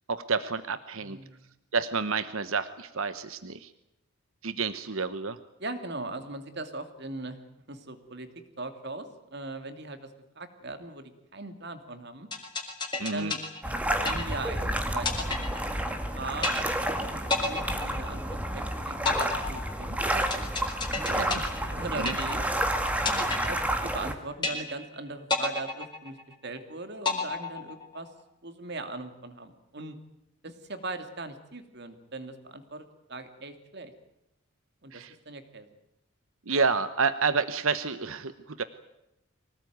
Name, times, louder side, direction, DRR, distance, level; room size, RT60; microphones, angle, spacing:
voice 1, 0.1-1.2 1.7-3.7 4.4-5.4 13.0-13.3 21.1-21.4 21.9-22.1 34.9-35.1 36.5-38.6, right 4 dB, 70° right, 12 dB, 1.0 m, -29 dB
voice 2, 1.0-1.5 5.6-7.4 7.7-8.3 8.6-10.1 10.4-12.3 13.1-13.4 14.0-15.6 16.1-16.6 16.9-20.4 21.8-22.4 22.9-26.2 26.4-28.1 28.4-30.0 30.4-33.9 34.8-35.7, right 2 dB, 50° right, 8 dB, 2.7 m, -40 dB
sound 1, 12.3-14.6 15.0-16.1 16.4-17.0 17.3-18.6 19.1-22.6 23.1-24.1 24.4-25.0 25.3-26.6 27.0-28.1, left 3 dB, 20° left, 4.2 m, -31 dB
sound 2, 13.6-24.1, right 1 dB, 5° right, 2.0 m, -30 dB
25.0 x 18.5 x 9.4 m, 0.89 s
head